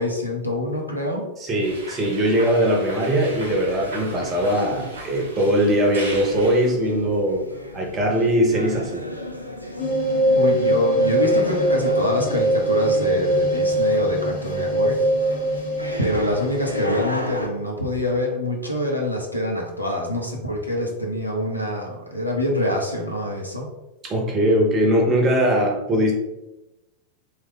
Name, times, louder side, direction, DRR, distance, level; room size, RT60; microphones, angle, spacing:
voice 1, 0.0-1.3 10.3-15.0 15.2-15.3 16.0-23.7, left 1 dB, 90° left, -1 dB, 0.6 m, -25 dB
voice 2, 1.4-7.4 7.7-9.0 24.0-26.1, equal, 25° right, 1 dB, 0.7 m, -20 dB
sound 1, 1.6-6.7, right 1 dB, 65° right, 0.8 m, -37 dB
sound 2, 3.2-17.5, left 1 dB, 90° right, 0.4 m, -35 dB
sound 3, 9.8-18.3, right 1 dB, 40° left, 0.7 m, -23 dB
3.2 x 2.2 x 3.4 m, 0.98 s
figure-of-eight pair, 90°, 0 cm